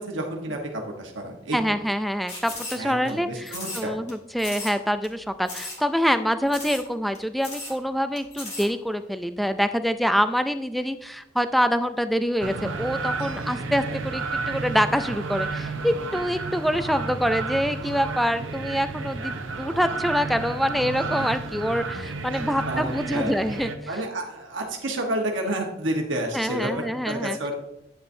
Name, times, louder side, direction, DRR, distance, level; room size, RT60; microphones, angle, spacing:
voice 1, 0.0-1.7 2.7-4.0 22.7-23.4 23.9-27.5, right 1 dB, 75° right, 1 dB, 1.2 m, -30 dB
voice 2, 1.5-23.7 26.3-27.4, equal, ahead, 10 dB, 0.3 m, -25 dB
sound 1, 2.3-3.1 3.5-4.1 4.4-4.8 5.0-5.1 5.5-5.8 6.1-6.2 6.5-6.9 7.1-7.2 7.4-7.8 8.2-8.7, left 2 dB, 40° left, 2.3 m, -36 dB
sound 2, 12.4-23.8, right 3 dB, 90° right, 0.8 m, -31 dB
9.5 x 6.8 x 2.7 m, 0.85 s
head